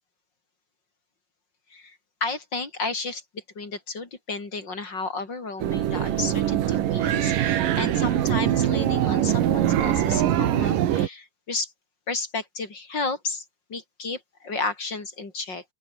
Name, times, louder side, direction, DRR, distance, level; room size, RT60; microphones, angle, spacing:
voice 1, 1.7-11.7 12.1-13.4 13.7-15.6, left 3 dB, 30° left, 4.1 m, -32 dB
sound 1, 5.6-11.1, right 11 dB, 75° right, 3.1 m, -23 dB
open air
omnidirectional pair, 4.0 m